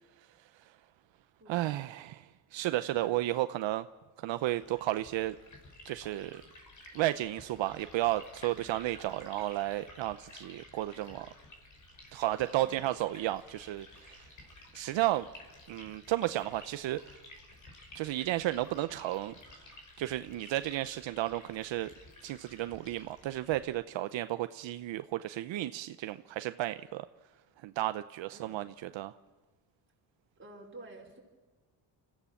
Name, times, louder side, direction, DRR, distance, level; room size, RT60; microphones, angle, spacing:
voice 1, 0.2-0.8 1.5-3.9 4.2-5.4 5.8-6.4 6.9-11.3 12.1-14.3 14.7-15.3 15.7-17.2 17.9-19.3 20.0-21.9 22.2-27.1 27.6-29.1, right 15 dB, 75° right, 11 dB, 0.8 m, -33 dB
Liquid, 4.5-23.6, left 2 dB, 40° left, 5.7 m, -54 dB
voice 2, 30.4-31.2, right 2 dB, 25° right, -1 dB, 4.9 m, -51 dB
29.5 x 15.0 x 7.2 m, 1.3 s
cardioid pair, 140°, 46 cm